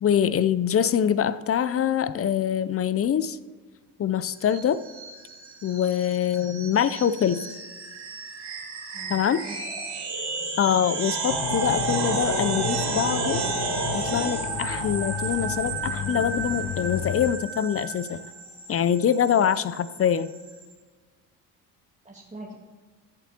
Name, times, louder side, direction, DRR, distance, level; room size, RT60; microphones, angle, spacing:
voice 1, 0.0-3.4 4.0-4.8 5.6-7.4 9.1-9.4 10.6-13.4 13.9-18.2 18.7-20.3, left 9 dB, 30° left, 15 dB, 0.5 m, -24 dB
sound 1, 4.4-20.7, right 3 dB, 55° right, 2.5 m, -32 dB
voice 2, 8.9-9.7 10.1-10.2 22.0-22.5, right 2 dB, 15° right, -2 dB, 1.6 m, -43 dB
Aircraft Dive Panned, 11.3-17.4, left 9 dB, 70° left, 0.8 m, -33 dB
14.5 x 8.1 x 2.9 m, 1.4 s
hypercardioid pair, 55°, 48 cm